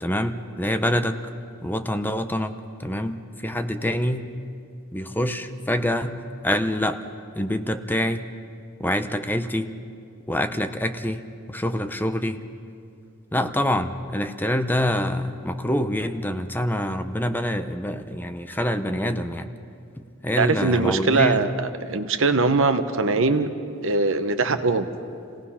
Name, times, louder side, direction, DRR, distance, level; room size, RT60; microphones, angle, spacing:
voice 1, 0.0-1.2 1.6-2.5 2.8-4.3 4.9-7.0 7.3-8.3 8.8-9.7 10.3-11.2 11.5-12.4 13.3-19.5 20.2-21.5, left 1 dB, 10° left, 8 dB, 0.7 m, -26 dB
voice 2, 20.4-23.5 23.8-24.9, right 3 dB, 65° right, 9 dB, 1.0 m, -21 dB
28.0 x 17.5 x 5.7 m, 2.5 s
head